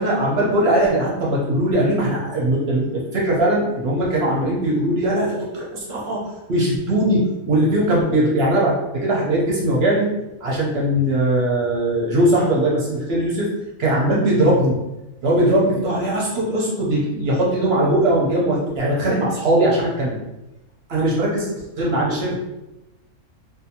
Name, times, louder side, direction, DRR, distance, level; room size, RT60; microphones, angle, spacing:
voice 1, 0.0-6.2 6.5-10.1 10.4-13.5 13.8-14.7 15.2-20.2 20.9-21.5 21.8-22.4, right 1 dB, 60° right, -4 dB, 0.7 m, -20 dB
2.6 x 2.2 x 2.7 m, 0.96 s
omnidirectional pair, 1.6 m